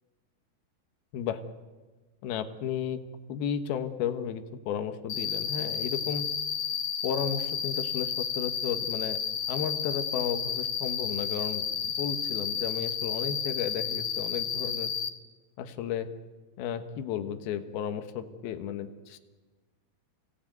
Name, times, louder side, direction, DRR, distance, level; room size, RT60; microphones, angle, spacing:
voice 1, 2.2-6.3 7.0-9.2 9.5-14.9 15.6-16.1 16.6-19.2, left 8 dB, 80° left, 8 dB, 3.1 m, -33 dB
Cricket, 5.1-15.1, left 7 dB, 60° left, 1.8 m, -32 dB
28.0 x 17.5 x 9.2 m, 1.3 s
omnidirectional pair, 4.4 m